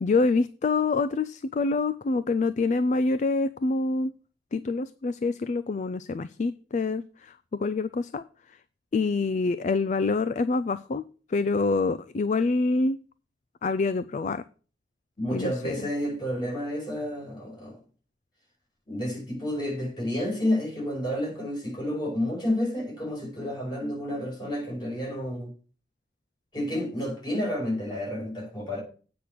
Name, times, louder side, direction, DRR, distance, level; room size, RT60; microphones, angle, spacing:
voice 1, 0.0-4.1 4.5-8.2 8.9-11.0 11.3-13.0 13.6-14.4 15.3-15.9, left 3 dB, 40° left, 0.4 m, -26 dB
voice 2, 15.2-17.8 18.9-25.5 26.5-28.8, left 1 dB, 25° left, 5.4 m, -30 dB
8.5 x 6.0 x 6.5 m
head